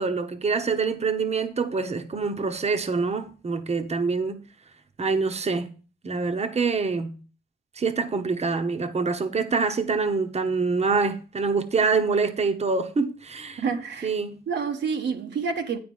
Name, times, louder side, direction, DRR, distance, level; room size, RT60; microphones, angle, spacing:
voice 1, 0.0-4.4 5.0-5.7 6.0-7.2 7.8-13.6 14.0-14.4, right 4 dB, 35° right, 1.0 m, -25 dB
voice 2, 13.6-14.1 14.5-15.8, right 5 dB, 75° right, 1.1 m, -28 dB
8.8 x 5.2 x 5.4 m
cardioid pair, 65°, 18 cm